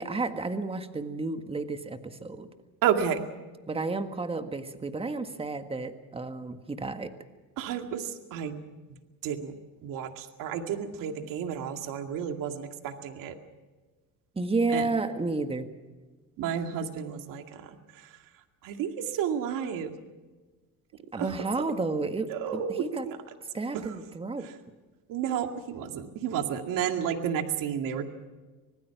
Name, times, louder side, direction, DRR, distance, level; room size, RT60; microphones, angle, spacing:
voice 1, 0.0-2.5 3.7-7.1 14.3-15.7 21.1-23.1 23.5-24.5, right 3 dB, 15° right, 8 dB, 1.7 m, -31 dB
voice 2, 2.8-3.2 7.6-8.6 9.2-9.5 9.8-13.4 14.7-14.9 16.4-18.2 18.6-19.9 21.1-21.4 22.3-23.2 23.7-23.9 24.4-24.5 25.1-28.1, right 8 dB, 70° right, 6 dB, 2.2 m, -31 dB
26.0 x 18.5 x 6.0 m, 1.3 s
cardioid pair, 110°, 34 cm